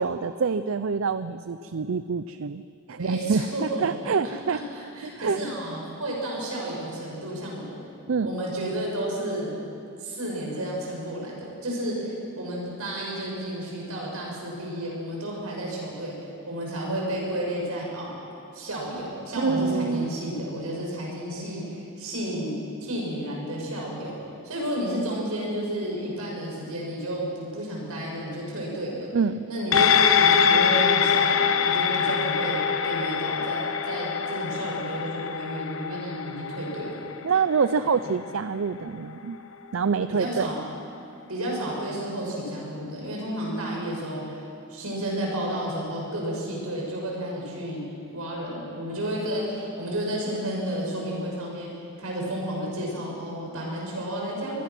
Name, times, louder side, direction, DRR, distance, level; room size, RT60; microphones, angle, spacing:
voice 1, 0.0-2.6 2.9-4.6 5.0-5.4 8.1-8.3 19.4-20.1 29.1-29.4 37.2-39.4 39.7-40.5, right 5 dB, 65° right, 13 dB, 0.5 m, -26 dB
voice 2, 3.0-3.9 4.5-7.8 8.2-9.5 10.0-16.2 16.5-18.1 18.5-22.5 22.8-24.2 24.4-29.1 29.5-32.6 32.8-37.2 37.8-38.1 40.2-40.6 41.3-51.7 52.0-54.6, right 1 dB, 85° right, -2 dB, 6.5 m, -31 dB
sound 1, 29.7-38.4 38.8-38.9, left 7 dB, 70° left, 1.1 m, -24 dB
24.5 x 19.5 x 6.1 m, 2.6 s
head